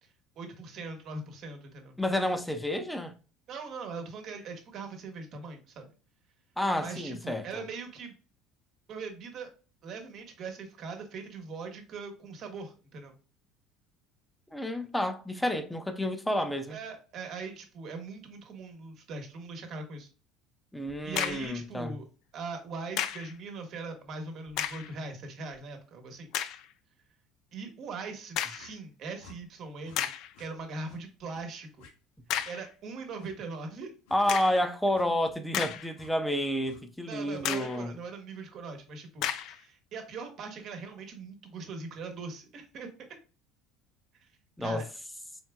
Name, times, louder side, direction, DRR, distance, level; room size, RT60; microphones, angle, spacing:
voice 1, 0.4-2.0 3.5-5.9 6.8-8.1 8.9-9.5 9.8-13.1 16.7-20.1 21.0-22.1 22.3-26.3 27.5-30.1 30.4-31.9 32.5-33.9 37.1-42.9 44.2-44.3 44.6-44.8, right 4 dB, 55° right, 1.2 m, -41 dB
voice 2, 2.0-3.1 6.6-7.6 14.5-16.8 20.7-21.9 34.1-37.9 44.6-44.8, left 1 dB, 5° left, 0.6 m, -30 dB
sound 1, 20.9-21.6 23.0-23.3 24.5-24.9 25.5-25.6 26.3-26.7 28.4-28.7 29.4-29.5 30.0-30.3 32.3-32.7 34.3-34.7 35.3-36.1 36.5-36.6 37.4-37.8 39.2-39.6, left 10 dB, 65° left, 0.4 m, -33 dB
sound 2, 28.5-28.7 29.2-29.4 29.8-30.0 30.3-30.5 30.8-31.0 31.3-31.5 31.8-31.9 32.3-32.5 33.2-33.3 34.1-34.2 34.9-35.1 35.9-36.1 36.6-36.8 37.3-37.5, left 4 dB, 85° left, 0.9 m, -54 dB
4.4 x 3.4 x 2.2 m
supercardioid pair, 105°, 0 cm